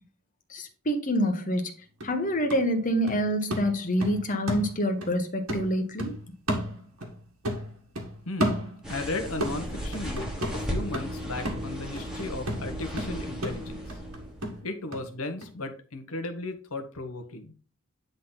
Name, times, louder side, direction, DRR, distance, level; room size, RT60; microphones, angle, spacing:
voice 1, 0.5-1.7 2.0-6.2, equal, 40° left, 6 dB, 1.2 m, -27 dB
sound 1, 1.5-1.6 2.0-5.2 5.5-7.2 7.4-9.1 9.4-15.1 15.4-15.5, equal, 90° right, 1.9 m, -33 dB
sound 2, 8.8-14.6, equal, 5° right, 1.6 m, -36 dB
voice 2, 8.9-14.0 14.6-17.5, left 2 dB, 85° left, 7 dB, 1.3 m, -35 dB
9.4 x 4.0 x 4.0 m, 0.39 s
head